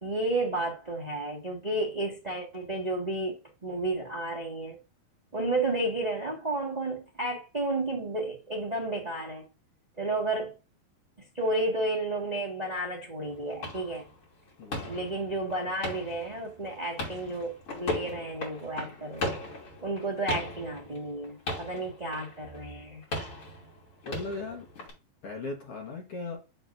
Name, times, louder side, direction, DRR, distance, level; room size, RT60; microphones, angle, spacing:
voice 1, 0.0-4.8 5.3-9.4 10.0-10.5 11.3-14.1 14.9-19.4 19.8-23.0, right 2 dB, 35° right, 0.6 m, -32 dB
sound 1, 13.2-24.9, left 2 dB, 40° left, 3.4 m, -38 dB
voice 2, 14.6-14.9 24.0-24.8 25.2-26.4, left 3 dB, 55° left, 1.8 m, -38 dB
7.8 x 6.4 x 2.6 m
omnidirectional pair, 4.2 m